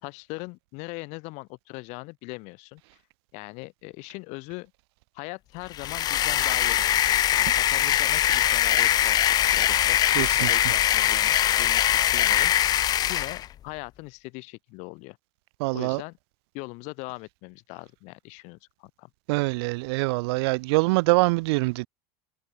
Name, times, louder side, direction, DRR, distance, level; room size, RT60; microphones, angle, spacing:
voice 1, 0.0-2.8 3.3-4.7 5.1-15.2 15.7-16.2 16.5-19.1, left 28 dB, 60° left, 1.8 m, -40 dB
sound 1, 5.7-13.5, left 12 dB, 30° left, 0.4 m, -22 dB
voice 2, 10.1-10.7 15.6-16.0 19.3-21.9, right 25 dB, 90° right, 0.6 m, -24 dB
cardioid pair, 155°, 13 cm